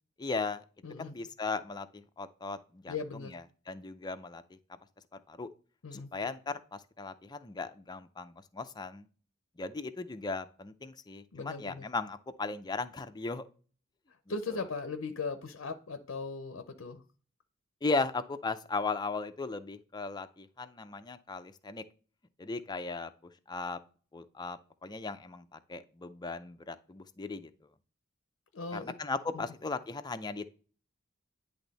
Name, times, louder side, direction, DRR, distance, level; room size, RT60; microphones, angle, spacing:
voice 1, 0.2-0.6 1.0-4.4 5.3-5.5 5.9-9.1 9.6-13.5 17.8-21.8 22.4-23.1 23.5-23.8 24.1-27.5 28.7-30.5, left 3 dB, 20° left, 9 dB, 0.5 m, -37 dB
voice 2, 0.8-1.1 2.9-3.3 5.8-6.1 11.3-11.8 14.3-17.0 28.5-28.9 29.3-29.4, left 4 dB, 75° left, 9 dB, 0.6 m, -38 dB
10.0 x 3.4 x 4.0 m, 0.40 s
head